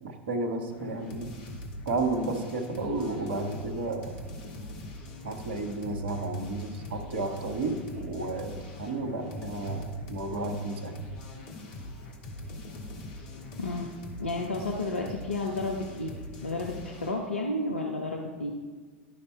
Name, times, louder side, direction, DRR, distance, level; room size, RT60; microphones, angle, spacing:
voice 1, 0.0-1.3 1.9-4.1 5.2-10.9, right 2 dB, 60° right, 6 dB, 1.1 m, -32 dB
sound 1, 0.7-17.2, left 1 dB, 50° left, 1.6 m, -42 dB
voice 2, 14.2-16.1 16.4-18.5, left 2 dB, 80° left, 1 dB, 0.8 m, -31 dB
12.0 x 5.3 x 4.4 m, 1.5 s
figure-of-eight pair, 90°, 7 cm